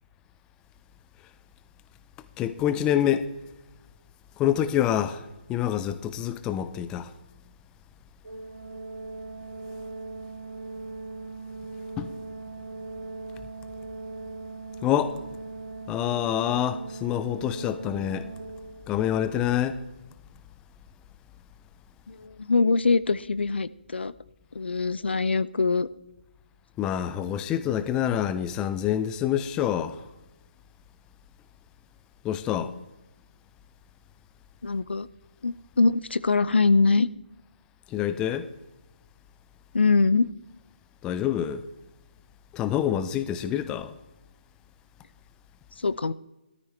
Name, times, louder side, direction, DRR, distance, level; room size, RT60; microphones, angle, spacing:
voice 1, 2.4-3.3 4.4-7.1 12.0-12.1 14.8-15.2 15.9-18.3 18.9-19.8 26.8-30.0 32.2-32.8 37.9-38.5 41.0-41.7 42.5-43.9, left 10 dB, 15° left, 0.5 m, -26 dB
Organ, 8.2-19.1, right 3 dB, 85° right, 1.4 m, -39 dB
voice 2, 22.1-24.1 24.5-25.9 32.6-32.7 34.6-35.1 35.4-37.1 39.7-40.3 45.8-46.1, left 4 dB, 85° left, 0.5 m, -23 dB
15.0 x 13.5 x 3.3 m
hypercardioid pair, 155°, 6 cm